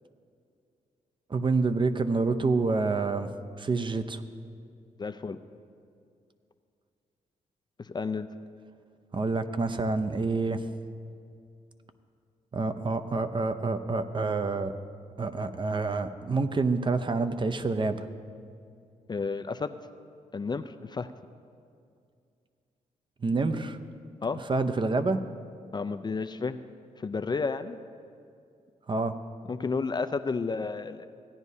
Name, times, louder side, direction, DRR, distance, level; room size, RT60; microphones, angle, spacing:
voice 1, 1.3-3.3 3.6-4.2 9.1-10.6 12.5-14.7 15.2-18.0 23.2-23.8 24.5-25.2 28.9-29.1, right 3 dB, 35° right, 10 dB, 0.6 m, -27 dB
voice 2, 5.0-5.4 7.8-8.3 19.1-19.8 20.3-21.1 24.2-24.4 25.7-26.6 27.0-27.8 29.5-31.1, left 4 dB, 30° left, 10 dB, 0.4 m, -31 dB
16.5 x 9.5 x 2.7 m, 2.4 s
cardioid pair, 70°, 14 cm